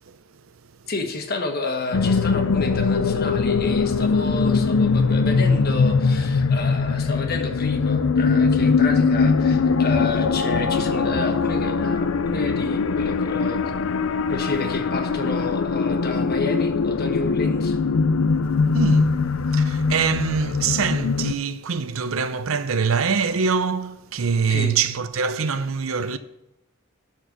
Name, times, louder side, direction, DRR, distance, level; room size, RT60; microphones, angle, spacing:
voice 1, 0.9-13.8 14.3-17.8 24.5-24.8, left 3 dB, 50° left, 1.3 m, -30 dB
sound 1, 1.9-21.3, left 4 dB, 80° left, 0.5 m, -21 dB
voice 2, 18.7-19.2 19.5-26.2, right 5 dB, 85° right, 0.7 m, -24 dB
11.5 x 4.6 x 6.0 m
head